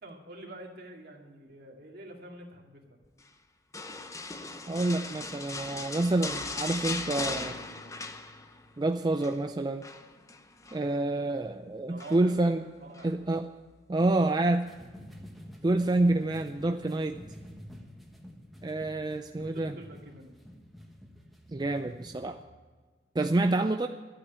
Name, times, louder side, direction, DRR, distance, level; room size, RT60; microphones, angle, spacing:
voice 1, 0.0-3.0 11.8-12.3 12.8-13.2 19.3-20.3, right 1 dB, 60° right, 1 dB, 2.3 m, -47 dB
sound 1, 3.7-8.7 9.0-9.4 9.8-10.8 12.0-12.4 12.9-13.1, left 3 dB, 20° left, 0.8 m, -38 dB
voice 2, 4.7-7.6 8.8-9.8 10.7-12.7 13.0-13.5 13.9-14.7 15.6-17.2 18.6-19.8 21.5-22.4 23.1-23.9, right 2 dB, 25° right, 7 dB, 0.4 m, -28 dB
sound 2, 14.6-22.4, equal, ahead, 1.4 m, -49 dB
12.0 x 8.8 x 8.1 m, 1.5 s
head